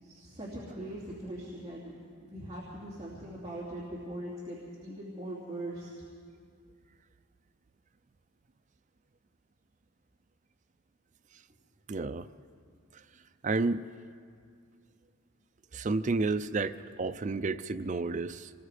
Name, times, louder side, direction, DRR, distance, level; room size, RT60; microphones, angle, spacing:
voice 1, 0.0-1.9 2.2-5.9, right 1 dB, 20° right, -8 dB, 2.8 m, -41 dB
voice 2, 11.9-12.3 12.9-13.0 13.4-13.8 15.7-18.5, right 3 dB, 35° right, 12 dB, 0.4 m, -31 dB
26.5 x 20.0 x 5.0 m, 2.2 s
head